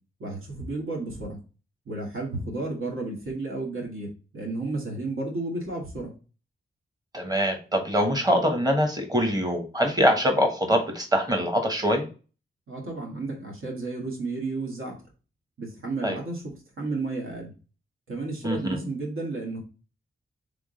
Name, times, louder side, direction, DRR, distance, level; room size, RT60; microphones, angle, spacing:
voice 1, 0.2-1.4 1.9-6.1 12.7-15.0 15.6-17.5 18.1-19.6, right 2 dB, 75° right, 0 dB, 1.8 m, -32 dB
voice 2, 7.1-12.1 16.0-16.2 18.4-18.8, equal, 20° right, 4 dB, 1.2 m, -24 dB
3.7 x 3.6 x 3.7 m, 0.34 s
wide cardioid pair, 120°, 21 cm